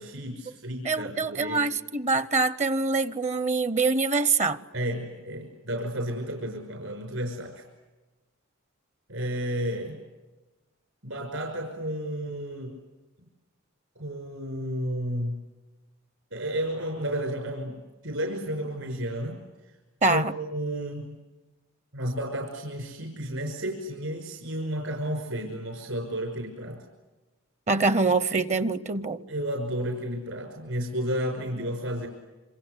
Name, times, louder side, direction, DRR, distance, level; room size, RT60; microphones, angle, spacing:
voice 1, 0.0-1.7 4.7-7.6 9.1-10.0 11.0-12.7 14.0-15.4 16.3-19.4 20.1-21.2 21.9-26.8 29.3-32.1, right 1 dB, 70° right, 3 dB, 5.6 m, -32 dB
voice 2, 0.8-4.6 20.0-20.3 27.7-29.2, right 3 dB, 35° right, 16 dB, 0.8 m, -24 dB
27.5 x 26.5 x 8.1 m, 1.2 s
head